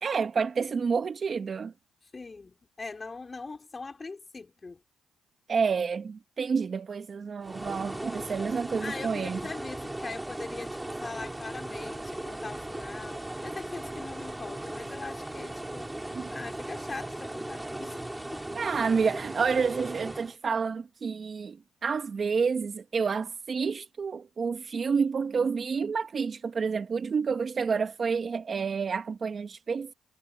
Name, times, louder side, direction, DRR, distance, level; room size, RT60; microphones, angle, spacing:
voice 1, 0.0-1.7 5.5-9.4 16.1-16.3 18.5-21.6 21.8-29.9, right 5 dB, 45° right, 1.3 m, -29 dB
voice 2, 2.1-4.8 8.8-15.9 16.3-18.5, left 3 dB, 30° left, 4.2 m, -41 dB
sound 1, 7.4-20.3, right 1 dB, 10° right, 4.2 m, -37 dB
cardioid pair, 90°, 0 cm